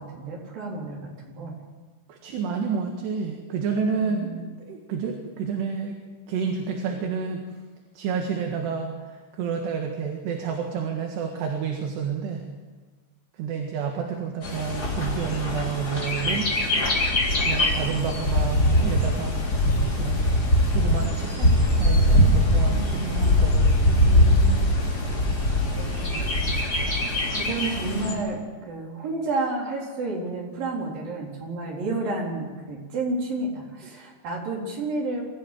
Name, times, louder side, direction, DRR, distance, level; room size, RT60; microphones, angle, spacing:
voice 1, 0.0-1.5 4.0-4.5 22.7-23.4 23.8-24.6 25.8-26.4 27.3-35.2, right 2 dB, 50° right, -2 dB, 5.7 m, -31 dB
voice 2, 2.1-4.3 4.6-6.0 6.3-7.4 8.0-12.5 13.4-16.5 17.4-19.4 20.0-20.3 20.7-23.6, right 6 dB, 70° right, 2 dB, 3.8 m, -29 dB
Bird, 14.4-28.1, left 1 dB, 20° left, 3.8 m, -22 dB
24.5 x 14.5 x 9.3 m, 1.4 s
omnidirectional pair, 5.2 m